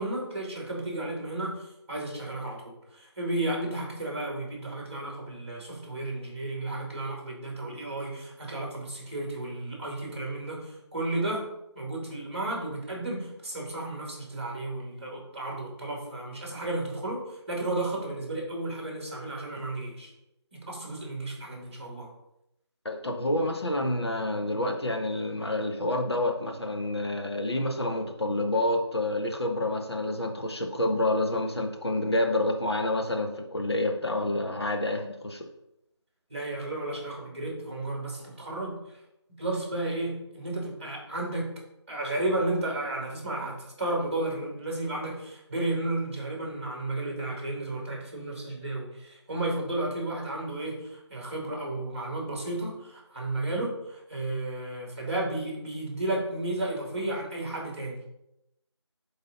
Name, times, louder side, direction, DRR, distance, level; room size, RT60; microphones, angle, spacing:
voice 1, 0.0-11.5 11.7-20.1 20.5-22.1 36.3-38.7 39.4-41.5 41.9-58.0, right 2 dB, 25° right, -2 dB, 2.4 m, -33 dB
voice 2, 22.8-35.5, left 1 dB, 60° left, 3 dB, 1.4 m, -28 dB
11.0 x 3.9 x 3.9 m, 0.85 s
figure-of-eight pair, 175°, 15 cm